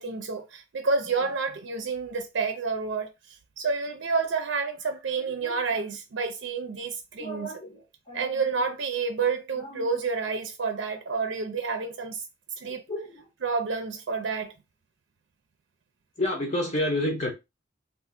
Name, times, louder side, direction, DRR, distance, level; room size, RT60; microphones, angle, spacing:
voice 1, 0.0-7.5 8.1-12.2 12.6-12.8 13.4-14.5, right 4 dB, 70° right, 0.5 m, -29 dB
voice 2, 5.4-5.8 7.2-8.7 9.5-9.9 12.9-13.3 16.2-17.3, left 1 dB, 35° left, 0.7 m, -31 dB
2.5 x 2.5 x 3.6 m
head